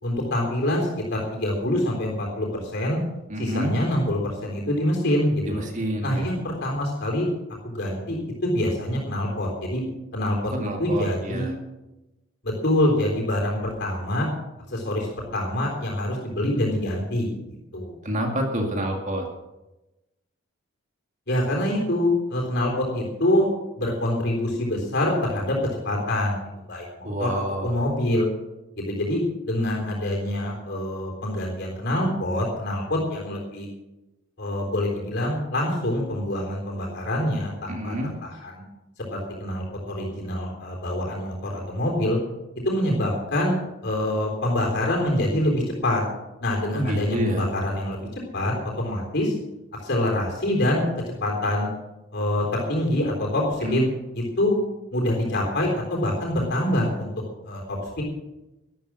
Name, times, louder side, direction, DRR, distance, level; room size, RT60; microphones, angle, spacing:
voice 1, 0.0-3.0 3.4-5.6 6.0-7.3 7.6-9.8 10.1-10.5 10.8-11.5 12.4-14.3 14.7-17.3 17.7-17.9 21.3-23.5 23.8-25.6 25.8-26.4 26.7-28.3 28.8-33.7 34.4-37.9 38.2-38.6 39.0-42.2 42.6-43.6 43.8-46.0 46.4-49.4 49.7-50.9 51.2-51.7 52.1-53.8 54.4-54.6 54.9-57.1 57.5-58.0, left 1 dB, 50° left, -1 dB, 3.8 m, -25 dB
voice 2, 3.3-3.8 5.5-6.3 10.4-11.5 18.0-19.3 27.0-27.9 37.7-38.1 46.7-47.5 53.6-53.9, right 1 dB, 35° right, 3 dB, 2.1 m, -28 dB
12.5 x 12.5 x 6.3 m, 1.0 s
head